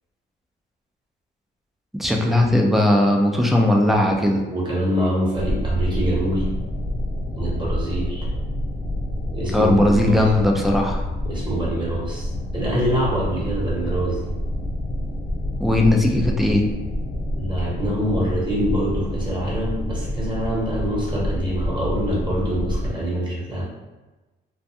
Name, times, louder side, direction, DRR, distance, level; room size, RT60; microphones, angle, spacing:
voice 1, 2.0-4.4 9.5-11.0 15.6-16.6, left 1 dB, ahead, 1 dB, 0.4 m, -18 dB
voice 2, 4.5-6.5 7.4-8.3 9.3-10.2 11.2-12.3 12.5-14.3 17.4-23.6, right 1 dB, 25° right, -5 dB, 1.0 m, -25 dB
sound 1, 5.3-22.9, left 1 dB, 50° left, 0.8 m, -27 dB
2.3 x 2.2 x 2.7 m, 1.1 s
cardioid pair, 90°, 20 cm